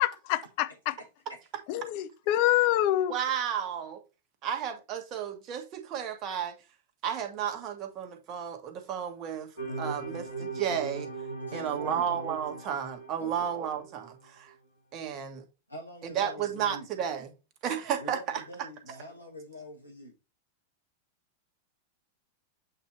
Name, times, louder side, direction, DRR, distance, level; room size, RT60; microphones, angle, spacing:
voice 1, 0.0-0.9 1.7-3.2, left 14 dB, 45° left, 0.5 m, -26 dB
voice 2, 0.7-1.4 11.5-12.2 13.2-13.6 15.7-16.9 18.0-20.1, left 1 dB, 85° left, 1.0 m, -45 dB
voice 3, 3.1-4.0 4.4-6.5 7.0-9.5 9.8-11.1 11.5-14.5 14.9-15.4 16.0-17.3 17.6-18.4, right 9 dB, 35° right, 1.4 m, -33 dB
sound 1, 9.6-14.2, right 3 dB, 70° left, 1.3 m, -39 dB
8.0 x 2.8 x 4.4 m
figure-of-eight pair, 90°, 0 cm